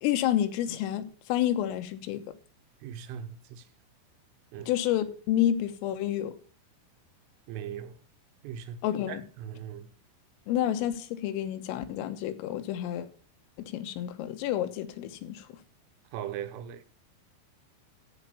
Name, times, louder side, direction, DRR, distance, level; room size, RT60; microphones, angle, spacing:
voice 1, 0.0-2.3 4.7-6.4 8.8-9.2 10.5-13.1 13.7-15.5, left 11 dB, 85° left, 3.8 m, -29 dB
voice 2, 2.8-3.7 4.5-4.7 7.5-8.0 8.4-8.8 9.1-9.9 16.1-16.8, right 9 dB, 85° right, 3.6 m, -39 dB
14.5 x 5.5 x 7.1 m
omnidirectional pair, 5.8 m